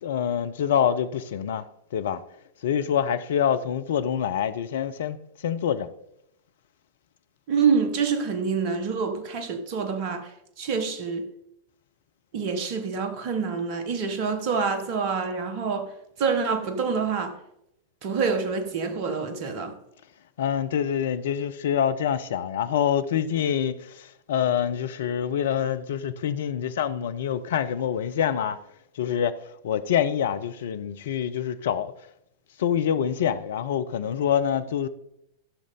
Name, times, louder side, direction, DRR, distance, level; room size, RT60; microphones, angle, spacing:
voice 1, 0.0-1.7 1.9-2.2 2.6-5.2 5.4-5.9 20.4-28.6 29.0-31.9 32.6-34.9, left 9 dB, 60° left, 0.7 m, -26 dB
voice 2, 7.5-11.3 12.3-17.4 18.0-19.8, right 5 dB, 45° right, 1.4 m, -27 dB
14.5 x 6.6 x 3.8 m
figure-of-eight pair, 90°, 0 cm